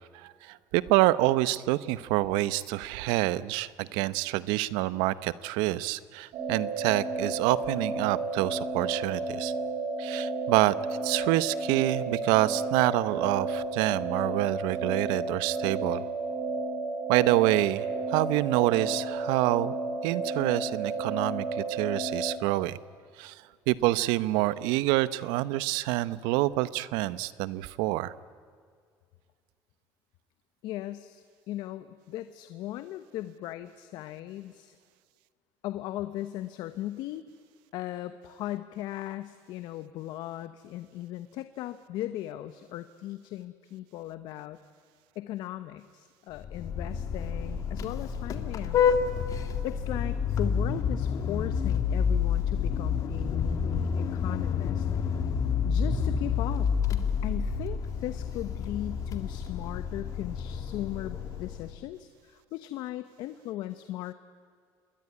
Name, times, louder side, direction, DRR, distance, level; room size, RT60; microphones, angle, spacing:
voice 1, 0.1-9.5 10.0-10.7 11.0-16.0 17.1-19.8 20.0-22.8 23.2-28.1, right 17 dB, 90° right, 17 dB, 0.9 m, -27 dB
sound 1, 6.3-22.4, right 3 dB, 60° right, 6.0 m, -32 dB
voice 2, 30.6-34.8 35.6-37.3 37.7-44.6 45.1-49.0 49.6-55.2 55.6-56.7 57.2-64.1, left 14 dB, 70° left, 11 dB, 1.0 m, -38 dB
Vehicle horn car horn honking, 46.4-61.8, left 6 dB, 50° left, 2.2 m, -29 dB
27.0 x 21.0 x 9.7 m, 2.1 s
cardioid pair, 125°, 8 cm